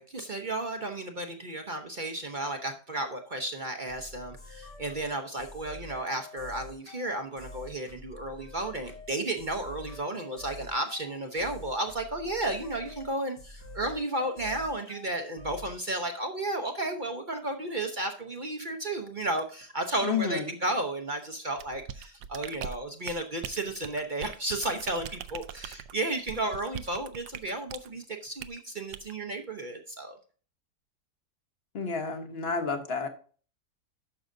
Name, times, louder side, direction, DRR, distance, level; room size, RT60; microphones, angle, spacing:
voice 1, 0.0-30.2, right 2 dB, 40° right, 4 dB, 0.7 m, -33 dB
sound 1, 3.9-15.7, left 2 dB, 80° left, 2.1 m, -47 dB
voice 2, 20.0-20.5 31.7-33.1, left 5 dB, 40° left, 6 dB, 1.2 m, -30 dB
sound 2, 21.6-27.9 28.4-28.6 28.9-29.1, right 9 dB, 75° right, 1.1 m, -41 dB
12.0 x 6.2 x 2.6 m, 0.40 s
omnidirectional pair, 1.8 m